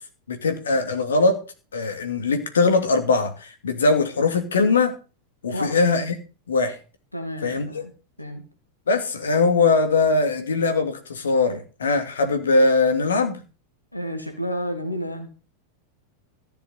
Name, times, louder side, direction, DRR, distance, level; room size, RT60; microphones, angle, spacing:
voice 1, 0.3-1.4 1.7-4.9 5.4-6.1 6.5-6.8 7.4-7.8 8.9-13.4, left 3 dB, 70° left, 7 dB, 2.6 m, -21 dB
voice 2, 5.5-5.9 7.1-7.9 8.2-8.4 13.9-15.3, equal, 85° left, 6 dB, 2.5 m, -31 dB
14.5 x 6.8 x 6.6 m, 0.35 s
figure-of-eight pair, 90°, 0 cm